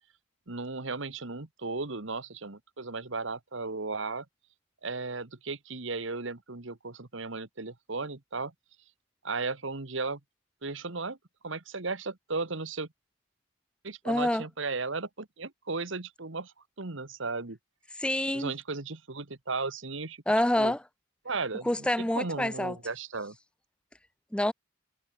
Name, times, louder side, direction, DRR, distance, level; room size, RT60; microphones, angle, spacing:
voice 1, 0.5-4.2 4.8-8.5 9.2-10.2 10.6-11.2 11.4-12.9 13.8-17.6 18.3-20.2 20.6-20.7 21.2-23.4, right 3 dB, 65° right, 1.5 m, -35 dB
voice 2, 14.0-14.4 18.0-18.5 20.3-20.8 21.6-22.8 24.3-24.5, left 1 dB, 5° left, 0.4 m, -27 dB
head